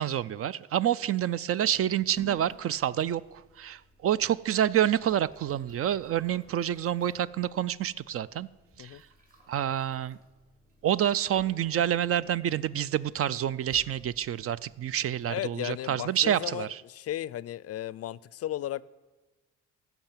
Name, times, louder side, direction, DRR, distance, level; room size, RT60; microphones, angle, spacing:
voice 1, 0.0-8.5 8.8-9.0 9.5-10.2 10.8-16.8, right 10 dB, 50° right, 0.4 m, -28 dB
sound 1, 1.7-15.5, left 1 dB, 30° right, 3.3 m, -56 dB
voice 2, 15.3-18.8, left 12 dB, 55° left, 0.4 m, -35 dB
15.0 x 5.9 x 8.8 m
cardioid pair, 90°, 30 cm